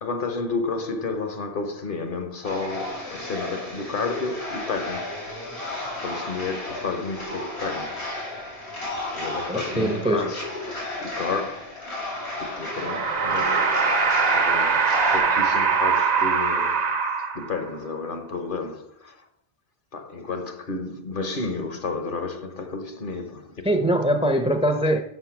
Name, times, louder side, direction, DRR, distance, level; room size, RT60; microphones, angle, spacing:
voice 1, 0.0-5.2 6.0-8.0 9.1-10.5 11.0-12.1 12.4-13.8 14.3-16.9 17.3-19.3 19.9-23.6, left 4 dB, 55° left, 1.1 m, -31 dB
sound 1, 2.4-15.2, left 2 dB, 85° left, 3.2 m, -33 dB
voice 2, 9.5-10.4 23.6-25.0, right 1 dB, 5° right, 0.5 m, -22 dB
sound 2, 12.6-17.7, right 5 dB, 45° right, 0.8 m, -22 dB
5.9 x 5.4 x 5.8 m
omnidirectional pair, 1.1 m